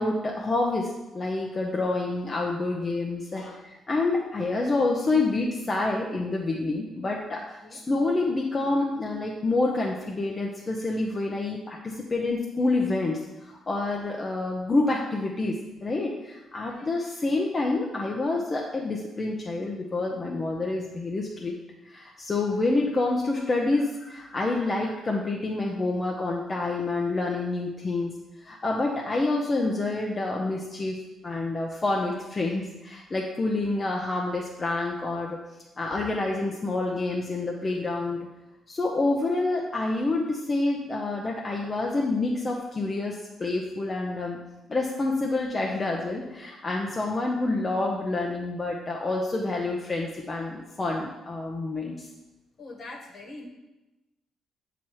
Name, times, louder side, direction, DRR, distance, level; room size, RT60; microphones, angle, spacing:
voice 1, 0.0-3.4 3.9-21.6 21.9-28.1 28.4-31.0 31.2-35.4 35.8-38.2 38.7-44.4 44.7-52.1, left 2 dB, 30° left, -1 dB, 0.6 m, -28 dB
voice 2, 52.6-53.5, left 2 dB, 55° left, -1 dB, 1.3 m, -43 dB
7.4 x 3.0 x 4.7 m, 1.0 s
cardioid pair, 90°, 0 cm